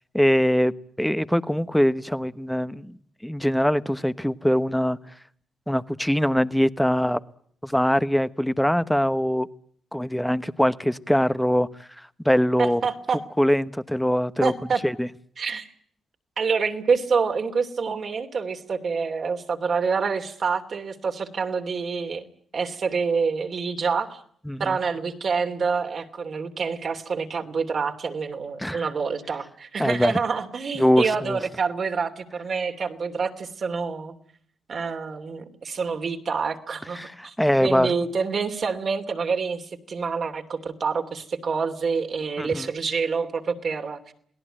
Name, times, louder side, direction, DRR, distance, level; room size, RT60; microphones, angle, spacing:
voice 1, 0.1-2.9 3.2-5.0 5.7-7.2 7.6-9.5 9.9-11.7 12.0-12.9 13.4-14.5 14.8-15.1 24.5-24.8 28.6-28.9 29.8-30.2 30.7-31.4 36.9-37.9 42.4-42.7, equal, 5° left, 1.1 m, -22 dB
voice 2, 12.6-13.2 14.4-14.8 15.4-15.7 16.4-22.3 22.5-24.2 24.6-34.1 34.7-37.0 37.2-37.3 37.6-44.1, right 5 dB, 55° right, 2.8 m, -27 dB
28.0 x 18.0 x 9.0 m
cardioid pair, 70°, 0 cm